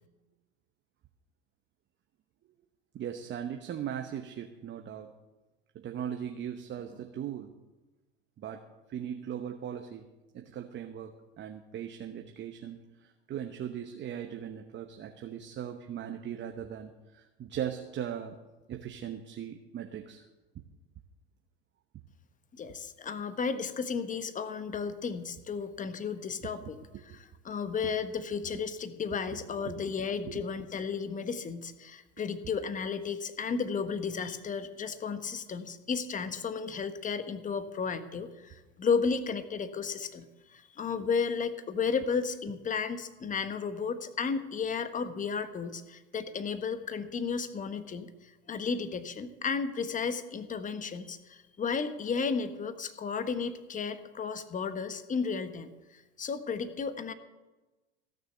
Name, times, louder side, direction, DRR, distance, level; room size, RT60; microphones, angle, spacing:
voice 1, 2.9-5.1 5.7-7.5 8.4-8.6 8.9-10.1 10.3-18.4 18.7-20.3 20.5-20.6 26.9-27.2 27.8-27.9 29.3-29.4 29.7-29.8 30.2-30.4 41.0-41.1, right 9 dB, 35° right, 6 dB, 1.0 m, -39 dB
voice 2, 22.5-26.7 27.1-57.1, left 5 dB, 25° left, 11 dB, 1.1 m, -33 dB
16.0 x 6.7 x 6.8 m, 1.1 s
hypercardioid pair, 85°, 32 cm